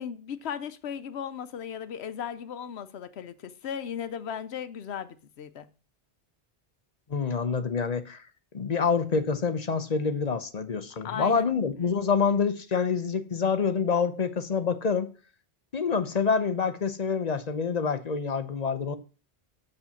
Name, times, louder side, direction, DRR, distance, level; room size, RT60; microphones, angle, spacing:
voice 1, 0.0-5.7 11.0-11.5, left 8 dB, 70° left, 1.0 m, -36 dB
voice 2, 7.1-8.2 8.5-15.1 15.7-19.0, left 5 dB, 40° left, 0.8 m, -27 dB
7.1 x 5.5 x 7.0 m
omnidirectional pair, 1.1 m